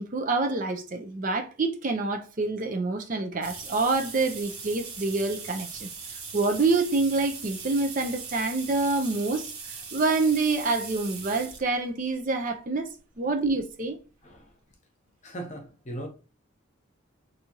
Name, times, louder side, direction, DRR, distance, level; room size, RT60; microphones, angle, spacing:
voice 1, 0.0-5.9 6.3-12.9 13.2-14.0, right 3 dB, 40° right, 0.5 m, -27 dB
sound 1, 3.4-11.7 12.5-12.6 13.9-14.0 14.3-14.4 14.7-14.8, right 5 dB, 90° right, 1.1 m, -40 dB
voice 2, 14.2-14.5 15.2-16.1, right 1 dB, 35° left, 0.9 m, -38 dB
4.9 x 2.7 x 2.9 m
head